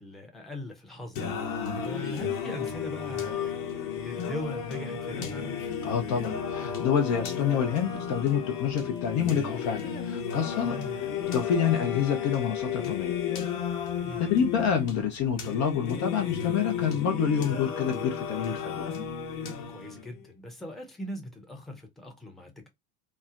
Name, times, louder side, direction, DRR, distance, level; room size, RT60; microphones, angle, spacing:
voice 1, 0.0-1.6 1.8-5.6 10.6-11.2 14.0-14.3 19.7-22.7, left 1 dB, ahead, 0.7 m, -40 dB
Singing, 1.2-20.2, left 7 dB, 55° left, 1.0 m, -33 dB
voice 2, 5.8-10.8 11.3-13.2 14.2-18.9, left 7 dB, 35° left, 0.6 m, -28 dB
3.2 x 2.0 x 2.4 m
hypercardioid pair, 80°, 48 cm